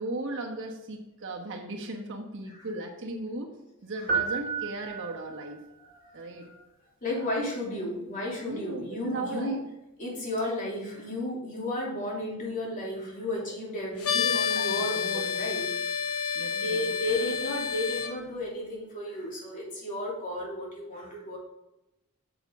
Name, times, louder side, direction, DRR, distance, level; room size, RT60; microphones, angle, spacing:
voice 1, 0.0-3.5 3.8-5.6 6.1-6.5 8.4-9.6 14.1-15.3 16.3-17.0, right 2 dB, 60° right, 1 dB, 1.2 m, -37 dB
sound 1, 4.1-5.5, right 6 dB, 40° right, 1.9 m, -31 dB
voice 2, 5.8-6.6 7.0-9.6 10.0-15.6 16.5-21.4, left 1 dB, 35° left, -4 dB, 3.0 m, -33 dB
sound 2, 14.0-18.1, left 7 dB, 70° left, 1.1 m, -29 dB
8.1 x 7.1 x 3.6 m, 0.92 s
head